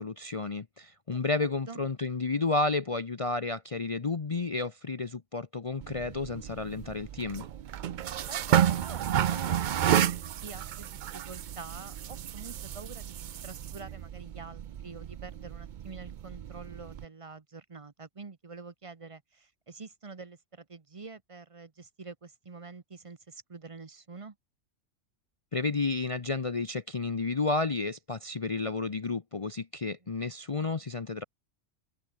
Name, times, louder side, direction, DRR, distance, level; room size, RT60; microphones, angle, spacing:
voice 1, 0.0-7.5 25.5-31.2, left 3 dB, 30° left, 0.8 m, -31 dB
sound 1, 5.8-17.0, right 10 dB, 55° right, 0.5 m, -31 dB
voice 2, 8.3-10.0 10.4-13.1 13.4-24.4, right 4 dB, 30° right, 0.9 m, -46 dB
omnidirectional pair, 1.2 m